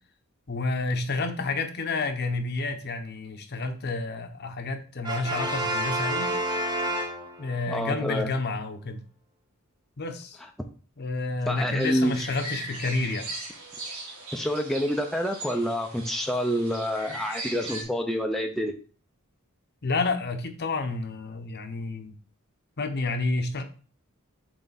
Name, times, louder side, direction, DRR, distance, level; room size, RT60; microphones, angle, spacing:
voice 1, 0.5-6.3 7.4-9.0 10.0-10.4 11.0-13.3 19.8-22.1 22.8-23.6, left 3 dB, 50° left, 7 dB, 0.8 m, -30 dB
Brass instrument, 5.0-7.7, right 1 dB, 20° right, 0.9 m, -29 dB
voice 2, 7.7-8.3 11.5-12.3 14.3-18.7, equal, ahead, 2 dB, 0.5 m, -27 dB
sound 1, 11.8-17.8, right 2 dB, 90° right, 1.9 m, -39 dB
7.2 x 3.3 x 4.1 m, 0.38 s
head